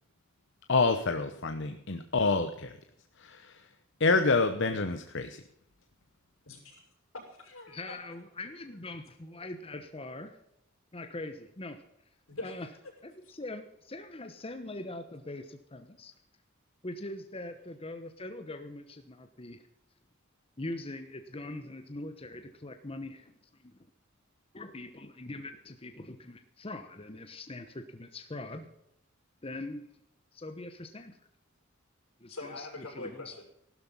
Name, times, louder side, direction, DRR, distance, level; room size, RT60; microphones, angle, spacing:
voice 1, 0.7-2.8 3.2-3.7 4.0-5.4, left 3 dB, 60° left, 7 dB, 0.9 m, -27 dB
voice 2, 6.4-6.8 7.1-8.0 12.3-12.5 13.2-13.3 32.3-33.4, left 2 dB, 90° left, 0 dB, 6.6 m, -43 dB
voice 3, 7.7-10.4 10.9-11.8 12.4-12.7 13.0-16.1 16.8-19.7 20.6-23.8 24.5-28.7 29.4-29.9 30.3-31.2 32.2-33.3, left 2 dB, 30° left, 7 dB, 1.0 m, -42 dB
16.0 x 12.5 x 5.6 m, 0.77 s
head